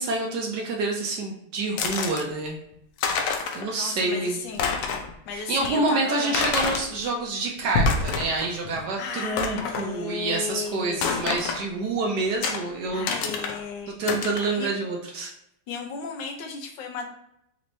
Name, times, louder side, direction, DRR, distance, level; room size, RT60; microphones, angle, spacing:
voice 1, 0.0-2.6 3.5-4.4 5.3-13.1 14.0-15.3, right 3 dB, 75° right, 0 dB, 0.9 m, -27 dB
sound 1, 1.8-2.2 2.7-2.8 3.0-3.7 4.0-4.1 4.5-5.1 5.6-5.7 6.3-6.9 7.6-8.5 8.8-8.9 9.4-9.9 11.0-11.6 12.4-12.6 13.1-13.6 14.1-14.5, left 4 dB, 90° left, 1.5 m, -27 dB
voice 2, 3.7-4.7 5.3-6.4 8.7-11.3 12.9-14.0 14.5-14.7 15.7-17.1, left 5 dB, 70° left, 3 dB, 1.1 m, -35 dB
4.2 x 3.0 x 2.6 m, 0.78 s
omnidirectional pair, 2.4 m